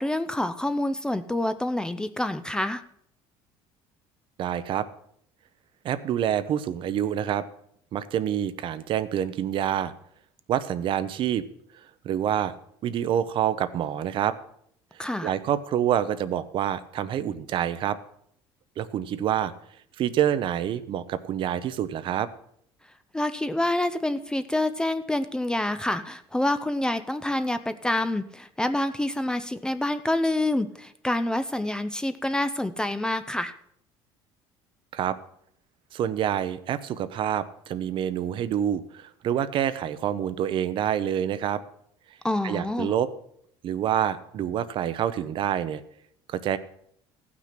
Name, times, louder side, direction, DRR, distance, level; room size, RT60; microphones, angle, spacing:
voice 1, 0.0-2.8 15.0-15.3 23.1-33.5 42.2-42.9, left 1 dB, 5° left, 11 dB, 0.5 m, -27 dB
voice 2, 4.4-4.9 5.8-7.4 7.9-9.9 10.5-11.4 12.0-12.5 12.8-14.4 15.2-18.0 18.8-19.5 20.0-22.3 34.9-35.2 35.9-41.6 42.4-43.1 43.6-45.8 46.3-46.6, right 10 dB, 50° right, 13 dB, 0.7 m, -27 dB
15.5 x 6.1 x 5.9 m, 0.69 s
cardioid pair, 130°, 11 cm